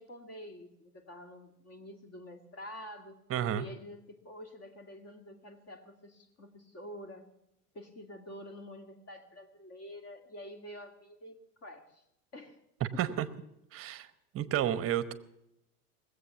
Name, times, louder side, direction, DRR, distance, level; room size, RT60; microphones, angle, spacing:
voice 1, 0.0-3.2 3.5-7.3 7.7-12.0 12.3-12.6 12.9-13.2, left 1 dB, 30° left, 7 dB, 2.4 m, -48 dB
voice 2, 3.3-3.6 13.0-13.3 13.7-14.1 14.3-15.1, right 11 dB, 30° right, 16 dB, 0.9 m, -31 dB
20.0 x 8.0 x 6.9 m, 0.84 s
hypercardioid pair, 105°, 46 cm